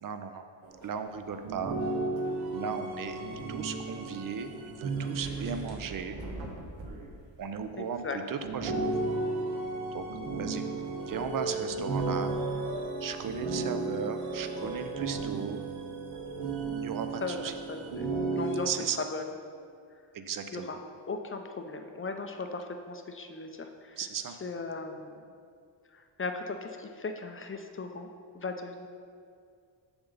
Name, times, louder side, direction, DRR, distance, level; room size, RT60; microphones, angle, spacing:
voice 1, 0.0-0.4 0.8-1.8 2.5-6.2 7.4-8.9 9.9-10.1 10.4-10.6 11.1-12.4 13.0-15.6 16.8-17.5 18.7-19.0 20.1-20.7 24.0-24.4, right 6 dB, 45° right, 8 dB, 0.6 m, -36 dB
sound 1, 0.6-0.9 1.4-6.3 6.8-7.1 7.7-7.8 8.4-18.6, right 3 dB, 85° right, 1.1 m, -34 dB
sound 2, 5.2-6.9, right 2 dB, 70° right, 1.5 m, -42 dB
voice 2, 7.8-8.2 17.2-18.1 18.3-18.7 19.1-19.3 20.5-20.8 21.1-24.0 24.3-25.2 25.9-28.1 28.3-28.9, left 3 dB, 30° left, 5 dB, 0.6 m, -38 dB
7.0 x 6.6 x 4.0 m, 2.3 s
cardioid pair, 85°, 47 cm